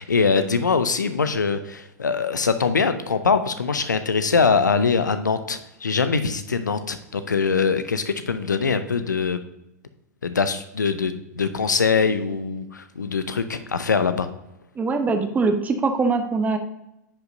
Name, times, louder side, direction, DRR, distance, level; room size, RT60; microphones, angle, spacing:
voice 1, 0.0-9.4 10.2-14.3, left 5 dB, 80° left, 10 dB, 0.6 m, -23 dB
voice 2, 14.8-16.6, right 4 dB, 15° right, 6 dB, 0.8 m, -22 dB
10.0 x 5.2 x 2.7 m, 0.89 s
figure-of-eight pair, 100°, 10 cm